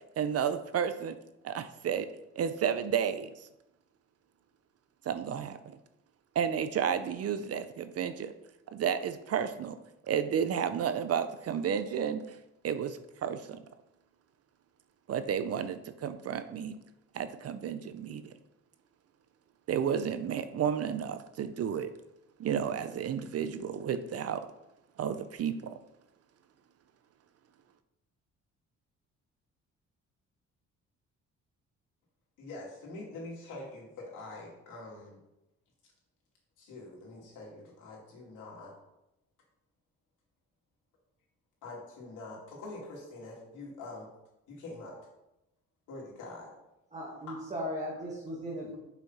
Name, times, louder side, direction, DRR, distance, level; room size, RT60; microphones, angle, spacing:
voice 1, 0.2-1.2 1.4-2.1 2.4-3.5 5.0-5.8 6.3-8.3 8.7-9.8 10.0-12.4 12.6-13.6 15.1-16.8 17.1-18.3 19.7-21.9 22.4-24.5 25.0-25.8, right 8 dB, 55° right, 11 dB, 0.5 m, -32 dB
voice 2, 32.4-35.2 36.6-38.7 41.6-44.1 44.5-45.0 45.9-46.5 47.3-47.4, left 2 dB, 85° left, -3 dB, 2.5 m, -45 dB
voice 3, 46.9-48.8, equal, 25° right, -4 dB, 1.7 m, -37 dB
5.8 x 5.8 x 4.1 m, 0.90 s
cardioid pair, 90°, 30 cm